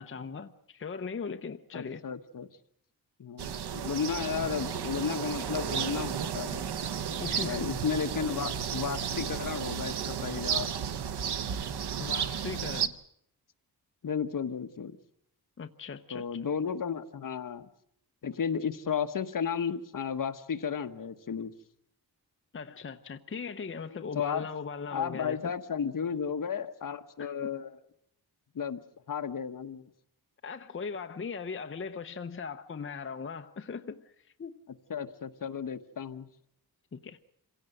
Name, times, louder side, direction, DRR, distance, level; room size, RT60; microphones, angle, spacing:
voice 1, 0.0-2.0 7.2-7.7 12.0-12.9 15.6-16.3 22.5-25.4 27.2-27.5 30.4-34.5 36.9-37.2, left 5 dB, 30° left, 0.8 m, -39 dB
voice 2, 1.7-2.5 3.2-6.7 7.4-10.8 14.0-15.0 16.1-17.7 18.2-21.5 23.9-24.5 24.9-27.7 28.5-28.8 29.1-29.9 34.9-36.3, left 7 dB, 55° left, 1.2 m, -33 dB
sound 1, 3.4-12.9, right 8 dB, 85° right, 1.0 m, -33 dB
26.5 x 17.0 x 7.9 m
wide cardioid pair, 150°, 38 cm